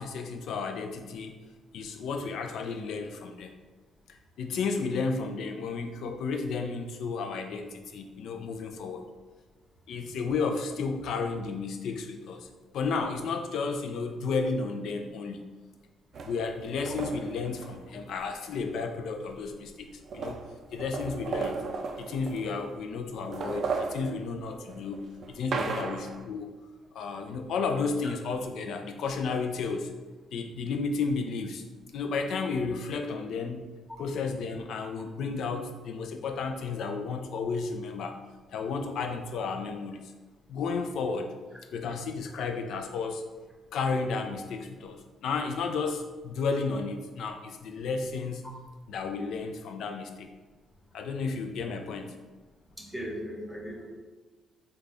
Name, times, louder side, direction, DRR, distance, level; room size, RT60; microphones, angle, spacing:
voice 1, 0.0-1.3 1.7-3.5 4.4-9.0 9.9-12.5 12.7-15.5 16.2-19.9 20.1-20.4 20.7-21.6 22.0-26.5 26.9-29.9 30.3-31.6 31.9-33.7 34.0-38.2 38.5-40.0 40.5-41.3 41.7-43.2 43.7-48.5 48.9-50.3 50.9-52.1, left 4 dB, 75° left, 6 dB, 0.4 m, -32 dB
sound 1, 16.1-18.3 19.3-19.4 19.7-22.8 23.2-26.3, right 4 dB, 60° right, 0.3 m, -36 dB
voice 2, 52.8-53.9, equal, ahead, -2 dB, 0.8 m, -38 dB
3.8 x 2.3 x 3.4 m, 1.3 s
cardioid pair, 90°, 0 cm